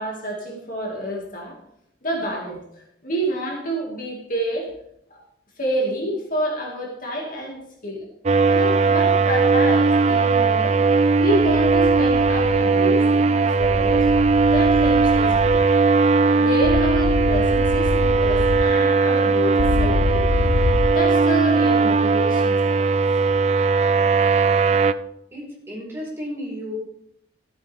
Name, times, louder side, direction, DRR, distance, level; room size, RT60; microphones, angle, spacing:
voice 1, 0.0-1.6 2.0-4.7 5.1-5.2 5.6-8.0 8.4-10.8 11.2-14.1 14.5-15.6 16.2-20.4 20.9-22.8, right 1 dB, 50° left, -1 dB, 2.4 m, -28 dB
sound 1, 8.3-24.9, right 4 dB, 40° right, 0.5 m, -18 dB
sound 2, 11.8-12.6 13.6-15.6 16.6-18.6 19.6-20.9, left 2 dB, 75° left, 0.7 m, -25 dB
voice 2, 25.3-26.8, equal, 15° right, -3 dB, 4.9 m, -33 dB
14.0 x 8.7 x 3.6 m, 0.74 s
head